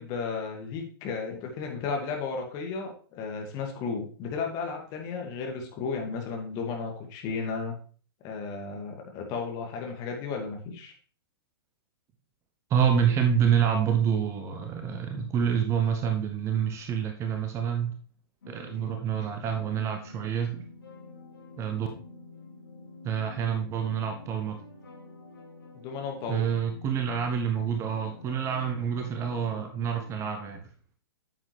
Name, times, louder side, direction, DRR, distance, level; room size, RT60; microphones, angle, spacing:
voice 1, 0.0-7.8 8.2-10.9 25.7-26.5, left 5 dB, 30° left, 2 dB, 2.1 m, -34 dB
voice 2, 12.7-17.9 18.5-20.6 21.6-21.9 23.0-24.6 26.3-30.6, right 8 dB, 20° right, 5 dB, 0.9 m, -27 dB
sound 1, 18.4-30.1, left 3 dB, 65° left, 2.5 m, -47 dB
9.2 x 7.4 x 3.3 m, 0.41 s
figure-of-eight pair, 110°, 13 cm